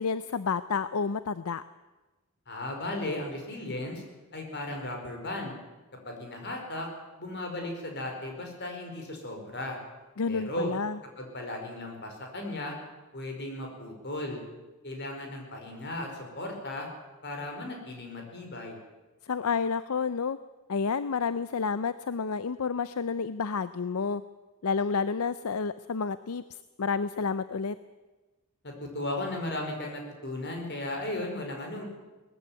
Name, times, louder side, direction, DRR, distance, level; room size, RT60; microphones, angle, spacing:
voice 1, 0.0-1.6 10.2-11.0 19.3-20.4 20.7-24.2 24.6-26.4 26.8-27.8, left 5 dB, 75° left, 14 dB, 0.6 m, -30 dB
voice 2, 2.5-4.0 4.3-5.6 6.0-6.9 7.2-9.8 10.3-10.7 11.2-12.8 13.1-14.4 14.8-16.9 17.2-18.8 28.6-31.9, left 1 dB, 50° left, 3 dB, 5.1 m, -36 dB
19.5 x 15.0 x 9.4 m, 1.2 s
head